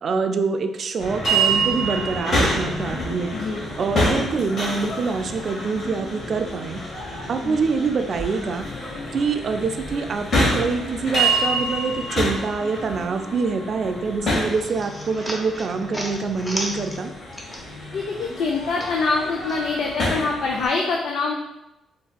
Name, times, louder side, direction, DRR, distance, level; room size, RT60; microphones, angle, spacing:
voice 1, 0.0-3.4 3.8-6.8 7.3-8.7 9.1-17.1, right 4 dB, 50° right, 7 dB, 0.3 m, -25 dB
sound 1, 1.0-20.7, right 1 dB, 50° left, 1.4 m, -27 dB
voice 2, 3.3-3.6 7.4-7.6 17.9-21.3, left 4 dB, 70° left, 0 dB, 0.4 m, -25 dB
sound 2, 14.3-17.9 18.2-19.6, equal, 15° left, 0.6 m, -34 dB
4.2 x 2.6 x 2.3 m, 0.94 s
cardioid pair, 90°, 0 cm